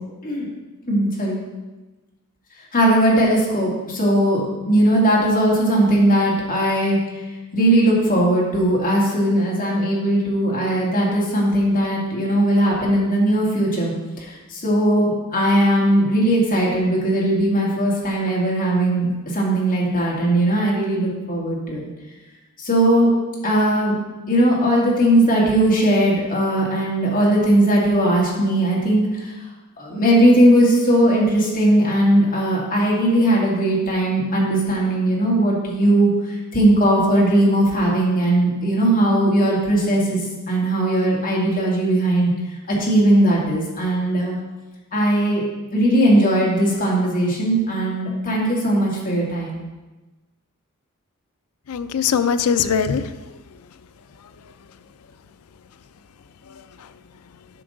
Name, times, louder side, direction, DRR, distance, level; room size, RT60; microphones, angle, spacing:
voice 1, 0.8-1.4 2.7-7.0 7.5-13.9 14.2-21.8 22.6-23.1 23.4-23.9 24.3-29.3 29.8-36.1 36.5-40.2 40.5-42.3 42.7-44.4 44.9-45.4 45.7-49.6, right 1 dB, 40° left, -4 dB, 2.3 m, -18 dB
voice 2, 51.7-53.4 56.5-56.9, left 7 dB, 80° left, 12 dB, 0.4 m, -22 dB
9.9 x 6.0 x 3.9 m, 1.1 s
head